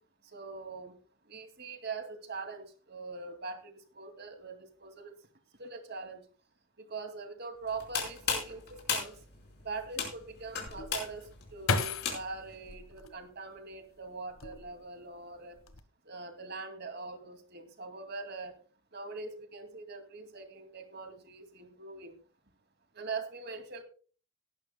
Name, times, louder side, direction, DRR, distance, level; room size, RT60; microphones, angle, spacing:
voice 1, 0.2-1.0 1.3-5.1 5.6-6.2 6.9-9.2 9.6-15.6 16.0-18.5 18.9-22.1 22.9-23.8, right 4 dB, 50° right, 6 dB, 2.5 m, -42 dB
sound 1, 7.7-12.5, left 6 dB, 50° left, 4.9 m, -36 dB
sound 2, 10.7-13.8 14.3-15.0 15.3-15.8, left 3 dB, 70° left, 1.5 m, -35 dB
18.5 x 11.5 x 2.3 m, 0.38 s
head